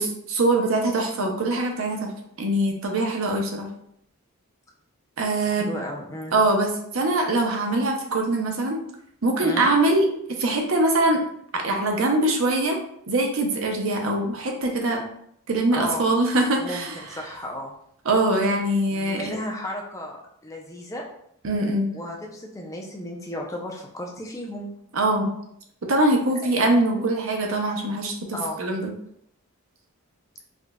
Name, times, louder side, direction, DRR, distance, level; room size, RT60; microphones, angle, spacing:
voice 1, 0.0-2.1 2.4-3.7 5.2-5.7 6.3-6.7 6.9-8.8 9.2-10.1 10.4-11.2 11.5-12.8 13.1-15.0 15.5-17.0 18.1-19.2 21.4-21.9 24.9-25.3 25.9-28.1 28.6-28.9, right 2 dB, 65° right, 2 dB, 0.7 m, -22 dB
voice 2, 5.4-6.3 9.4-9.7 15.7-16.1 16.6-17.7 18.9-21.0 21.9-24.7 28.3-28.6, left 1 dB, 15° left, -1 dB, 0.5 m, -34 dB
5.0 x 2.4 x 2.2 m, 0.71 s
head